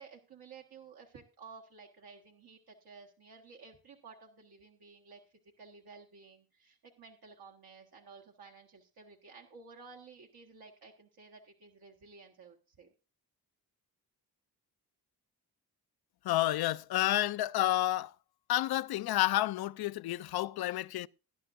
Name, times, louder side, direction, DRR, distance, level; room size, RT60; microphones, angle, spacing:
voice 1, 0.0-12.9, right 4 dB, 85° right, 1.6 m, -54 dB
voice 2, 16.2-18.1 18.5-21.1, left 15 dB, 85° left, 0.5 m, -30 dB
18.5 x 10.0 x 2.6 m
cardioid pair, 90°, 37 cm